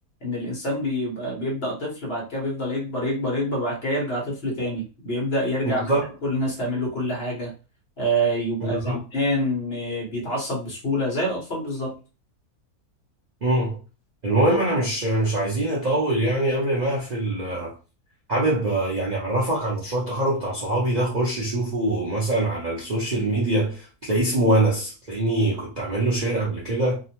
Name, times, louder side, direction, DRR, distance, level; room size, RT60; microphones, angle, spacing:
voice 1, 0.2-5.8 6.2-7.5 8.0-12.0, equal, 45° left, 1.0 m, -26 dB
voice 2, 5.7-6.0 8.6-9.0 13.4-13.8 14.2-17.7 18.3-27.0, right 1 dB, 45° right, 0.6 m, -23 dB
2.9 x 2.1 x 2.8 m
omnidirectional pair, 1.6 m